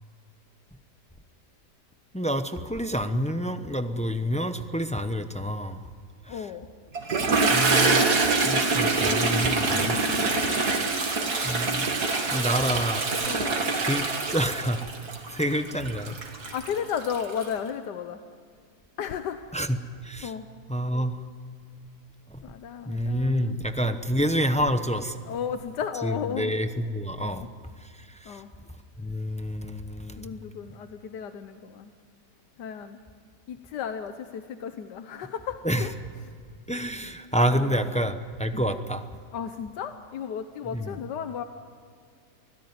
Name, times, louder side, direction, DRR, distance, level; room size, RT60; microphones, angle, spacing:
voice 1, 2.1-5.8 6.2-6.5 7.5-8.0 8.3-10.0 11.4-11.9 12.3-13.1 13.8-14.8 15.3-16.2 19.5-19.8 20.0-20.3 20.7-21.2 22.3-22.4 22.9-25.2 26.0-27.5 27.8-28.4 29.0-30.3 35.6-35.9 36.7-39.0 40.7-41.0, equal, 5° left, 9 dB, 0.5 m, -28 dB
voice 2, 6.3-6.7 10.2-11.3 13.3-13.7 16.5-18.2 19.0-19.4 20.2-20.5 22.4-23.6 25.2-26.5 27.2-27.5 28.2-28.5 30.2-31.9 32.6-33.0 33.5-35.9 37.5-38.1 38.5-38.6 39.3-41.4, left 7 dB, 80° left, 9 dB, 1.5 m, -34 dB
Toilet flush, 7.0-17.5, right 3 dB, 70° right, 2.7 m, -25 dB
24.0 x 16.5 x 9.6 m, 2.2 s
omnidirectional pair, 1.8 m